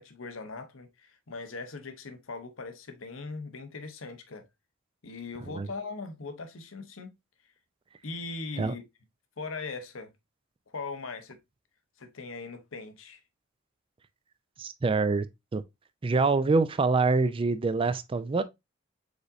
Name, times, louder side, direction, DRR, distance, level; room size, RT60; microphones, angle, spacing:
voice 1, 0.0-4.5 5.0-7.1 8.0-8.8 9.4-10.1 10.7-11.4 12.0-13.2, left 3 dB, 90° left, 0.9 m, -40 dB
voice 2, 14.6-15.3 15.5-15.6 16.0-18.4, right 3 dB, 25° right, 0.3 m, -25 dB
4.9 x 4.0 x 2.5 m
head